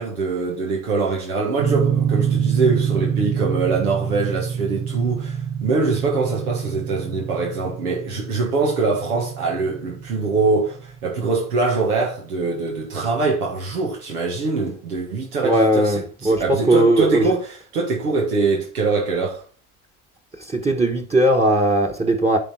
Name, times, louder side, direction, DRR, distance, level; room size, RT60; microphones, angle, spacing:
voice 1, 0.0-15.9 16.2-17.5 17.7-19.4, right 3 dB, 90° right, 1.7 m, -23 dB
sound 1, 1.6-11.7, right 8 dB, 45° right, 1.6 m, -26 dB
voice 2, 15.4-17.4 20.3-22.4, right 1 dB, 15° right, 1.4 m, -18 dB
9.9 x 3.8 x 4.7 m
hypercardioid pair, 75°, 43 cm